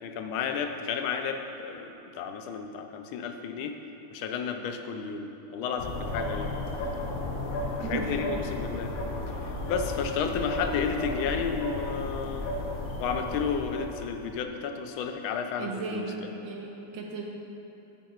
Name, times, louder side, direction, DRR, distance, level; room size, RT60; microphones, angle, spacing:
voice 1, 0.0-3.7 4.1-6.5 7.9-8.9 9.3-12.5 13.0-16.1, left 6 dB, 85° left, 5 dB, 1.4 m, -32 dB
sound 1, 5.8-14.3, left 1 dB, 65° left, 0.7 m, -34 dB
voice 2, 15.6-17.2, right 4 dB, 70° right, -1 dB, 1.5 m, -35 dB
9.0 x 8.8 x 2.4 m, 2.9 s
omnidirectional pair, 2.2 m